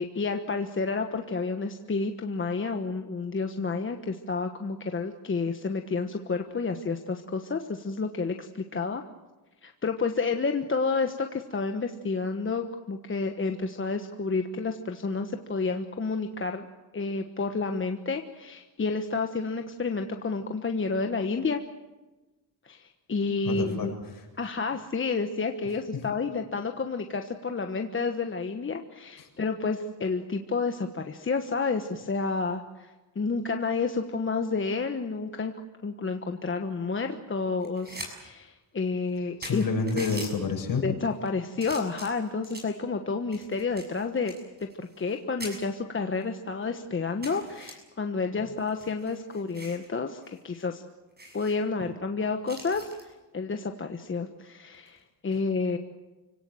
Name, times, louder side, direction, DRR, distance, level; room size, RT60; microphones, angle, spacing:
voice 1, 0.0-9.0 9.6-16.7 16.9-21.6 22.6-23.9 24.4-35.5 35.8-39.6 40.8-44.3 44.6-50.8 51.3-55.8, left 4 dB, 30° left, 5 dB, 1.3 m, -30 dB
voice 2, 23.5-23.9 39.4-40.8, left 4 dB, 55° left, 2 dB, 7.5 m, -28 dB
sound 1, 37.6-38.1 38.5-38.6 39.1-39.2 39.4-40.3 41.0-41.3 41.6-42.8 43.3-45.1 45.4-45.6 46.2-46.3 46.6-46.7 47.2-47.7 48.6-49.9 50.2-50.4 50.7-50.8 51.2-51.5 52.5-53.0 54.7-55.0, right 1 dB, 25° right, 7.0 m, -42 dB
29.5 x 18.0 x 7.9 m, 1.2 s
cardioid pair, 120°, 42 cm